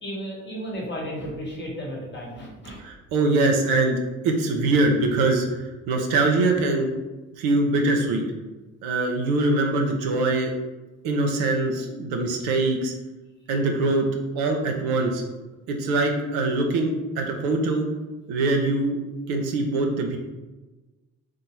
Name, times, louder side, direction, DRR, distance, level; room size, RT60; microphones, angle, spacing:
voice 1, 0.0-2.8, equal, 30° left, -3 dB, 1.0 m, -33 dB
voice 2, 2.8-6.9 7.4-8.2 8.8-10.5 11.0-12.9 13.5-14.1 14.4-15.2 15.7-17.8 18.3-19.0 19.3-20.2, right 2 dB, 70° right, 3 dB, 0.6 m, -23 dB
2.6 x 2.0 x 3.0 m, 1.2 s
hypercardioid pair, 60°, 40 cm